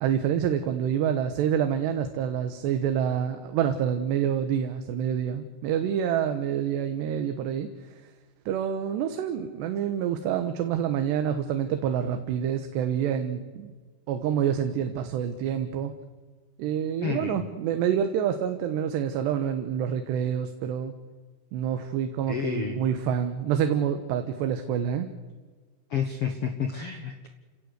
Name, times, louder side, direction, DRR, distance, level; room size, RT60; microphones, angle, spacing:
voice 1, 0.0-8.0 8.5-13.7 14.1-15.9 16.6-20.9 21.5-25.1, right 9 dB, 75° right, 7 dB, 3.3 m, -27 dB
voice 2, 17.0-17.4 22.3-22.8 25.9-27.3, left 7 dB, 70° left, 6 dB, 1.3 m, -30 dB
29.5 x 17.5 x 8.2 m, 1.4 s
omnidirectional pair, 5.0 m